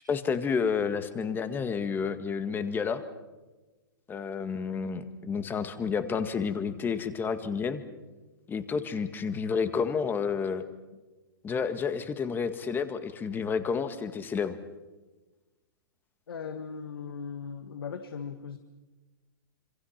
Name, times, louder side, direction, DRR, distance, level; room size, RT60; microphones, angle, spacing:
voice 1, 0.1-3.0 4.1-7.8 8.5-10.6 11.4-14.6, left 6 dB, 15° left, 10 dB, 1.8 m, -30 dB
voice 2, 16.3-18.6, left 6 dB, 85° left, 8 dB, 1.6 m, -38 dB
27.0 x 27.0 x 5.9 m, 1.2 s
hypercardioid pair, 135°, 12 cm